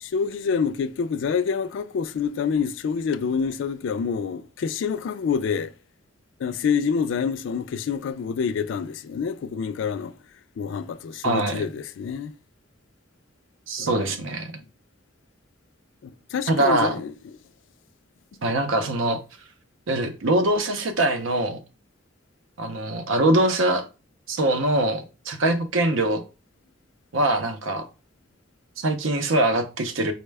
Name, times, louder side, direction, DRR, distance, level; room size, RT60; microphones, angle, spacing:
voice 1, 0.0-5.7 6.4-10.1 10.6-12.3 13.8-14.2 16.0-17.1, left 6 dB, 70° left, 0.3 m, -27 dB
voice 2, 11.2-11.7 13.7-14.5 16.5-17.0 18.4-19.2 19.9-21.6 22.6-23.9 24.3-26.2 27.1-27.9 28.8-30.1, right 1 dB, 75° right, 0.6 m, -23 dB
4.2 x 2.1 x 3.3 m
head